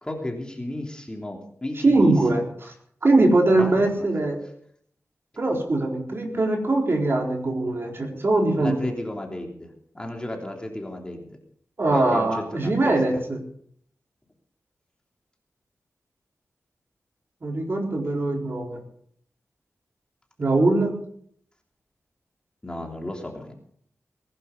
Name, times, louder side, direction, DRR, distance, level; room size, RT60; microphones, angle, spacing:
voice 1, 0.0-2.4 3.5-4.1 8.6-11.4 11.9-13.2 22.6-23.5, left 1 dB, 15° left, 1 dB, 3.2 m, -34 dB
voice 2, 1.8-2.7 3.0-4.4 5.4-8.9 11.8-13.4 17.4-18.8 20.4-20.9, right 2 dB, 45° right, 1 dB, 4.1 m, -21 dB
20.0 x 11.5 x 5.4 m, 0.63 s
wide cardioid pair, 95°, 5 cm